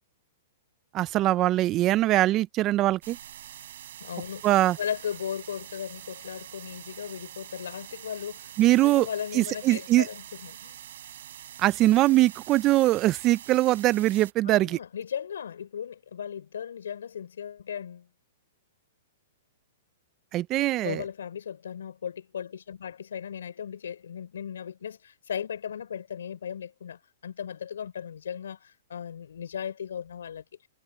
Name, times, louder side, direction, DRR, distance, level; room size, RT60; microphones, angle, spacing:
voice 1, 0.9-3.2 4.4-4.8 8.6-9.1 9.3-10.1 11.6-14.8 20.3-21.0, right 16 dB, 30° right, 0.4 m, -22 dB
sound 1, 3.0-14.3, right 11 dB, 70° right, 6.4 m, -45 dB
voice 2, 4.0-4.4 4.8-8.5 8.8-10.8 14.4-18.1 20.8-28.6 28.9-30.4, left 8 dB, 85° left, 4.8 m, -36 dB
hypercardioid pair, 145°, 0 cm